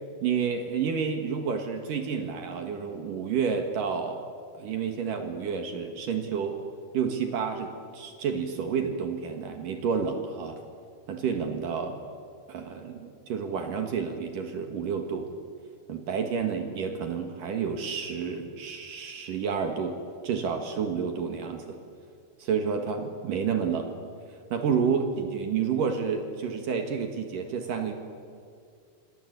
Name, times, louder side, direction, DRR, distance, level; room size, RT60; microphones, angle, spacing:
voice 1, 0.2-4.2 4.6-6.6 6.9-10.6 11.1-12.0 12.5-15.3 15.9-20.0 20.2-21.8 22.4-23.9 24.5-27.9, right 6 dB, 65° right, 5 dB, 3.2 m, -30 dB
28.0 x 25.5 x 8.2 m, 2.2 s
omnidirectional pair, 4.4 m